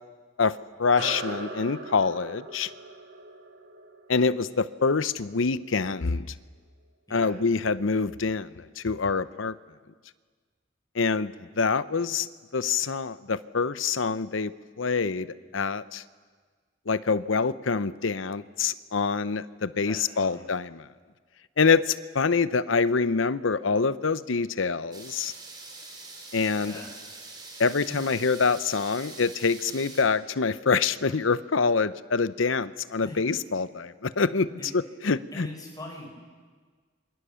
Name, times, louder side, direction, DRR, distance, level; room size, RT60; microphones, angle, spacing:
voice 1, 0.4-2.7 4.1-6.3 7.1-9.6 10.9-12.3 12.5-14.5 14.8-16.0 16.9-20.8 21.6-25.3 26.3-26.7 27.6-35.5, left 4 dB, 80° left, 15 dB, 0.8 m, -26 dB
sound 1, 1.0-5.8, right 2 dB, 65° right, 3.6 m, -40 dB
voice 2, 7.1-7.4 19.8-20.5 26.6-26.9 27.9-28.1 33.0-33.2 34.6-34.7 35.3-36.1, left 1 dB, 20° left, 1 dB, 5.4 m, -42 dB
sound 2, 24.9-30.0, right 3 dB, 20° right, 4.3 m, -44 dB
27.5 x 25.0 x 7.0 m, 1.5 s
head